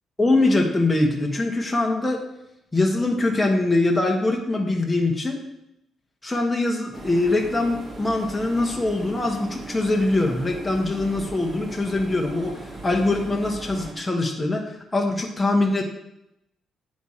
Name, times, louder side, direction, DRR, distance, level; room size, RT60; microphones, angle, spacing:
voice 1, 0.2-2.2 2.7-5.4 6.2-15.8, left 2 dB, 15° left, 0 dB, 1.2 m, -23 dB
sound 1, 6.9-13.9, right 2 dB, 45° right, 1.9 m, -38 dB
8.1 x 4.2 x 5.0 m, 0.84 s
cardioid pair, 90°, 0 cm